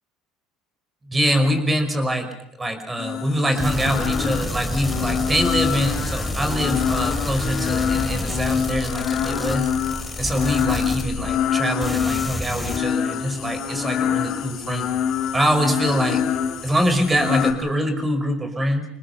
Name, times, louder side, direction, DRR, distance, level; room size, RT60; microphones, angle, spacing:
voice 1, 1.0-2.3 2.6-9.7 10.2-15.0 15.3-16.2 16.6-18.9, equal, 15° right, 7 dB, 5.5 m, -24 dB
sound 1, 3.0-17.5, left 8 dB, 55° left, 4.0 m, -26 dB
sound 2, 3.6-11.5 11.8-12.8, left 1 dB, 5° left, 2.9 m, -29 dB
28.0 x 19.5 x 6.8 m, 0.84 s
supercardioid pair, 100°, 0 cm